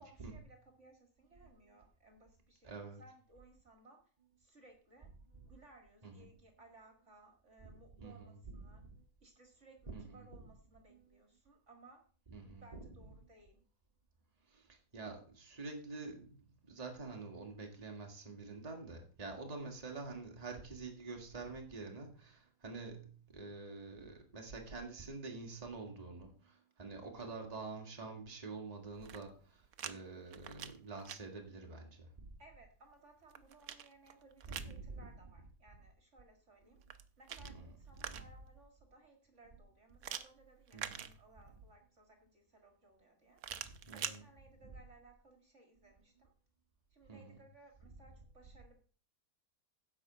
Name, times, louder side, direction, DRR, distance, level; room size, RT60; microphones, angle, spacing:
voice 1, 0.0-4.0 4.4-5.1 5.4-8.8 9.2-12.0 12.4-13.6 32.4-36.8 37.2-43.4 43.9-46.3 46.9-48.8, right 2 dB, 45° right, 3 dB, 2.1 m, -62 dB
voice 2, 2.6-3.0 6.0-6.3 7.6-8.4 8.6-8.9 9.9-10.2 10.9-11.0 12.3-12.6 14.5-32.1 34.5-35.0 37.5-37.7 38.1-38.2 40.7-41.1 43.6-44.2 47.1-47.4, right 3 dB, 25° right, 2 dB, 2.0 m, -47 dB
sound 1, 28.9-29.9 30.3-31.2 32.9-34.8 36.7-38.5 40.0-41.6 43.4-44.2, right 9 dB, 65° right, 1.2 m, -46 dB
10.5 x 5.1 x 7.6 m, 0.40 s
omnidirectional pair, 1.8 m